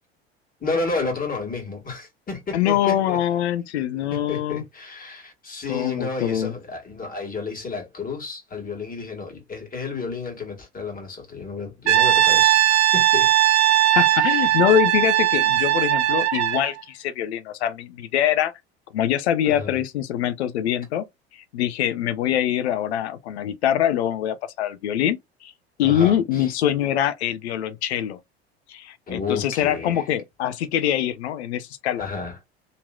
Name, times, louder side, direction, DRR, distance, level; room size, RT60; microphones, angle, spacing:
voice 1, 0.6-3.2 4.1-13.3 14.1-14.6 19.4-19.8 25.8-26.5 29.1-30.1 32.0-32.4, left 4 dB, 25° left, 1.6 m, -31 dB
voice 2, 2.5-4.6 5.7-6.5 13.9-18.5 18.9-21.1 21.3-25.5 25.8-28.2 28.7-32.1, left 11 dB, 80° left, 0.6 m, -24 dB
Brass instrument, 11.9-16.7, right 13 dB, 90° right, 0.5 m, -18 dB
3.0 x 2.8 x 2.2 m
hypercardioid pair, 70°, 33 cm